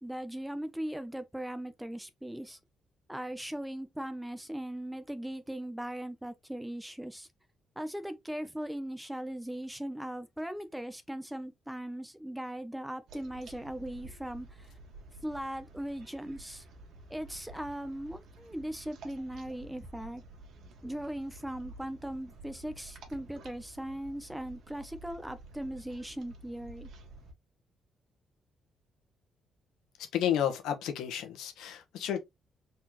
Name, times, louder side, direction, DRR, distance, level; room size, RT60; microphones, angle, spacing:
voice 1, 0.0-2.6 3.1-7.3 7.8-14.7 15.2-16.6 17.1-20.2 20.8-26.9, right 1 dB, 5° right, 0.7 m, -39 dB
sound 1, 13.1-27.3, right 2 dB, 70° right, 1.6 m, -51 dB
voice 2, 30.1-32.2, left 10 dB, 85° left, 1.1 m, -31 dB
4.1 x 3.8 x 3.0 m
cardioid pair, 90°, 0 cm